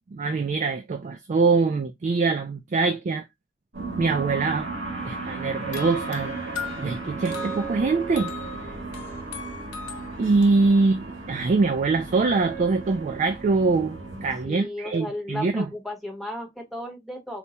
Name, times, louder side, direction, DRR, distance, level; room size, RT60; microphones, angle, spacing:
voice 1, 0.1-3.3 4.0-4.7 5.0-6.4 6.8-8.3 10.2-15.7, right 3 dB, 40° right, 0.3 m, -23 dB
sound 1, 3.7-14.5, right 3 dB, 80° right, 1.8 m, -35 dB
sound 2, 5.7-10.5, left 7 dB, 65° left, 0.6 m, -39 dB
voice 2, 14.4-17.4, left 1 dB, ahead, 1.0 m, -34 dB
4.2 x 2.2 x 2.8 m
head